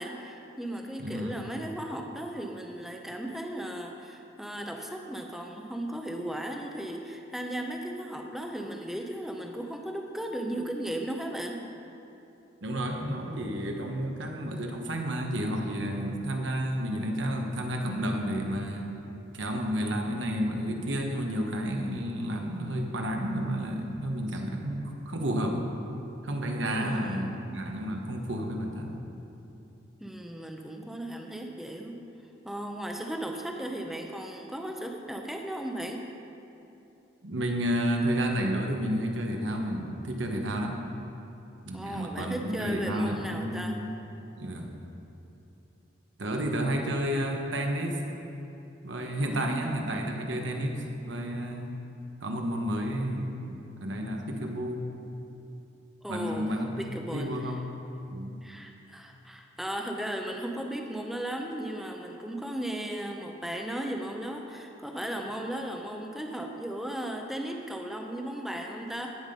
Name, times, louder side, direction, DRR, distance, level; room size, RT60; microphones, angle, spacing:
voice 1, 0.0-11.6 26.6-27.6 30.0-32.0 32.4-36.1 41.7-43.8 49.2-49.8 56.0-57.5 58.4-69.2, right 1 dB, ahead, 2 dB, 0.7 m, -36 dB
voice 2, 1.0-1.5 12.6-18.9 19.3-25.7 26.2-29.0 37.2-40.8 41.6-43.9 44.4-44.7 46.2-48.0 48.8-51.8 52.2-54.9 56.1-57.6 58.1-58.4, equal, 70° right, 2 dB, 1.2 m, -31 dB
16.5 x 5.9 x 5.3 m, 2.8 s
head